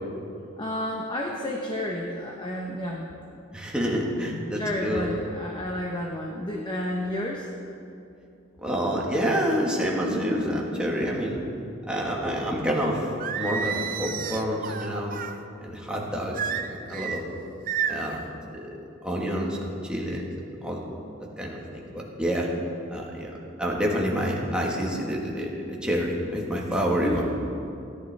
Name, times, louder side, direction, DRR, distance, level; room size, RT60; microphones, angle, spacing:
voice 1, 0.6-3.1 4.5-7.5 27.0-27.2, left 1 dB, 25° left, -1 dB, 0.9 m, -31 dB
voice 2, 3.5-5.2 8.6-11.4 11.9-13.1 13.3-15.2 15.6-17.2 17.9-18.2 18.5-18.7 19.0-20.3 20.6-20.9 21.4-22.5 22.9-23.3 23.6-27.2, equal, 5° right, -2 dB, 1.5 m, -28 dB
Singing, 13.2-15.4 16.3-17.2 17.7-18.2, right 7 dB, 45° right, 0.5 m, -30 dB
17.0 x 11.0 x 3.4 m, 2.6 s
head